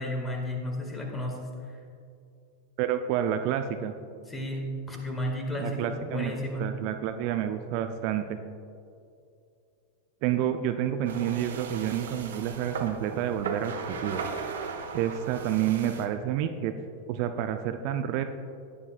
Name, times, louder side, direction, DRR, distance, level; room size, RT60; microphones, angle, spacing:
voice 1, 0.0-1.7 4.3-6.7, equal, 15° left, 2 dB, 1.9 m, -33 dB
voice 2, 2.8-3.9 5.6-8.4 10.2-14.2 14.9-16.7 17.1-18.2, right 10 dB, 45° right, 8 dB, 0.5 m, -29 dB
sound 1, 11.0-16.1, right 5 dB, 60° right, 0.9 m, -37 dB
16.0 x 9.7 x 2.4 m, 2.5 s
figure-of-eight pair, 90°, 0 cm